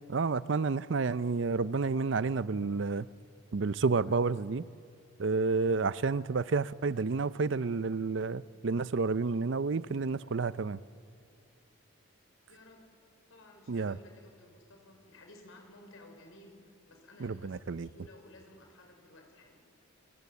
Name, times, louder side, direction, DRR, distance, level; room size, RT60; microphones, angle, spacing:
voice 1, 0.1-3.1 3.5-4.6 5.2-10.8 13.7-14.0 17.2-17.9, right 4 dB, 60° right, 0.5 m, -30 dB
voice 2, 12.5-12.9 13.3-19.6, left 1 dB, 75° left, 5.5 m, -55 dB
27.5 x 18.0 x 8.4 m
head